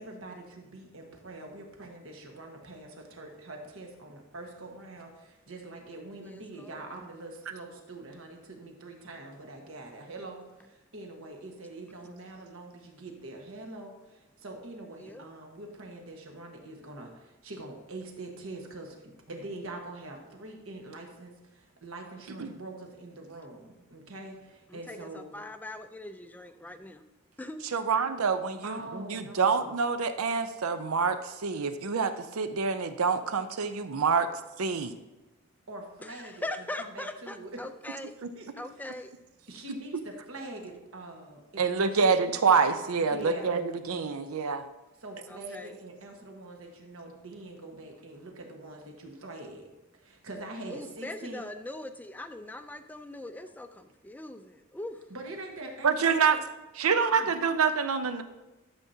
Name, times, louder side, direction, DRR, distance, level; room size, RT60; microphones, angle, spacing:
voice 1, 0.0-21.3 21.8-25.3 28.6-29.7 35.7-37.7 38.1-38.8 39.5-42.0 43.0-43.5 45.0-49.7 50.0-51.4 55.1-56.4 56.8-57.4, right 2 dB, 70° right, 2 dB, 1.4 m, -44 dB
voice 2, 6.2-6.8 15.0-15.2 24.7-27.0 27.4-27.6 36.0-38.1 38.6-39.1 45.3-45.8 50.7-55.0, left 1 dB, 10° left, 8 dB, 0.4 m, -41 dB
voice 3, 27.7-34.3 34.6-34.9 41.6-44.7 55.8-56.4 56.8-58.2, right 5 dB, 85° right, 10 dB, 0.6 m, -26 dB
12.0 x 7.2 x 2.8 m, 1.1 s
head